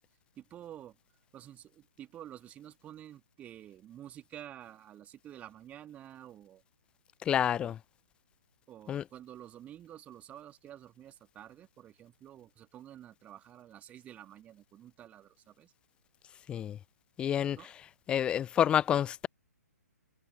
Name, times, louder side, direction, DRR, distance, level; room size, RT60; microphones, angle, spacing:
voice 1, 0.4-0.9 1.3-6.6 7.5-7.8 8.7-15.7 17.5-17.7, right 11 dB, 15° right, 2.5 m, -50 dB
voice 2, 7.3-7.8 8.9-9.0 16.5-16.8 17.2-17.6 18.1-19.3, left 9 dB, 10° left, 0.4 m, -28 dB
figure-of-eight pair, 125°, 9 cm